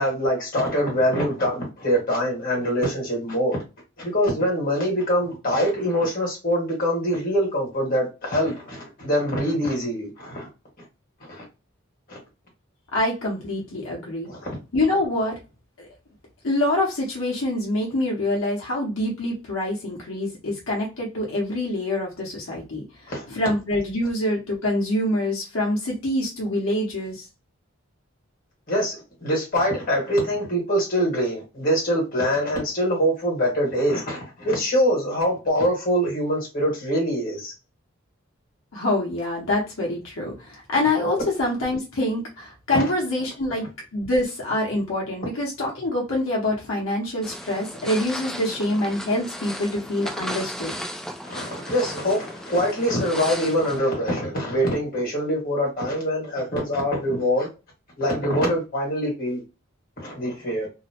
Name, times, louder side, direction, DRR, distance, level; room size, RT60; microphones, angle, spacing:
voice 1, 0.0-3.6 4.0-10.5 11.2-11.4 12.1-12.2 14.2-14.5 23.1-23.3 28.7-37.5 42.7-42.8 51.2-57.5 58.0-59.4 60.0-60.7, equal, 40° left, 1.3 m, -24 dB
voice 2, 12.9-14.3 14.7-15.3 15.8-15.9 16.4-22.8 23.3-27.3 38.7-43.7 43.9-50.8, left 1 dB, 80° left, 0.9 m, -25 dB
sound 1, 47.2-53.8, equal, 5° left, 0.4 m, -35 dB
2.6 x 2.0 x 2.8 m
head